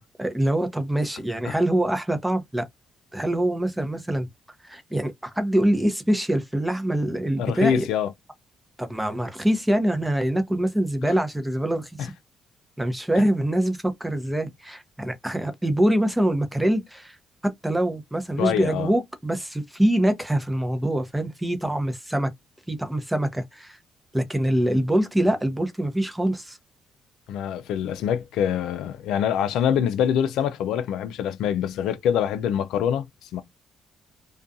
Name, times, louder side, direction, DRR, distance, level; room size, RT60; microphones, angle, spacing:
voice 1, 0.2-2.7 3.1-4.3 4.6-7.8 8.8-12.1 12.8-17.2 17.4-22.3 22.7-23.8 24.1-26.6, right 1 dB, 10° right, 0.7 m, -24 dB
voice 2, 7.4-8.1 11.0-11.1 13.1-13.2 18.4-18.9 27.3-33.4, left 9 dB, 85° left, 0.3 m, -25 dB
2.4 x 2.2 x 2.6 m
cardioid pair, 90°, 0 cm